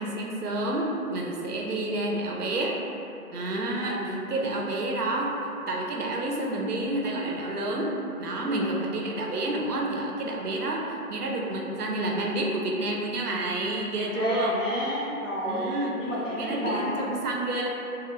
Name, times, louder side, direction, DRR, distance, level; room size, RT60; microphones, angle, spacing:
voice 1, 0.0-2.8 3.3-5.3 5.7-7.9 8.2-10.8 11.1-14.6 15.4-16.0 16.4-17.7, right 2 dB, 85° right, -1 dB, 0.5 m, -29 dB
voice 2, 3.7-4.2 8.4-8.9 13.9-15.7 16.0-17.0, equal, 55° left, -7 dB, 0.7 m, -31 dB
2.0 x 2.0 x 3.1 m, 2.8 s
figure-of-eight pair, 175°, 45 cm